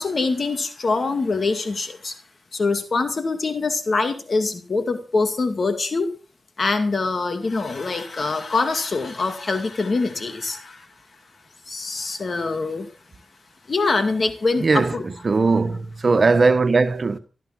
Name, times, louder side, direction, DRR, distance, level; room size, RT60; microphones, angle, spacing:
voice 1, 0.0-2.2 2.5-6.1 6.6-10.9 11.7-12.9 13.7-14.7, left 3 dB, 60° left, 2.2 m, -24 dB
voice 2, 14.6-17.2, right 4 dB, 55° right, 1.4 m, -19 dB
13.5 x 13.0 x 6.2 m
cardioid pair, 50°, 0 cm